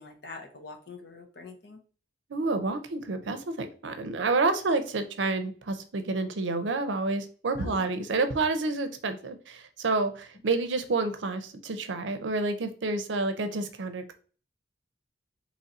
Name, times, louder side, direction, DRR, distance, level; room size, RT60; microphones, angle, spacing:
voice 1, 0.0-1.8 7.6-7.9, left 4 dB, 60° left, 3 dB, 0.7 m, -44 dB
voice 2, 2.3-14.1, right 3 dB, 85° right, 9 dB, 0.6 m, -29 dB
3.0 x 2.5 x 4.1 m, 0.39 s
head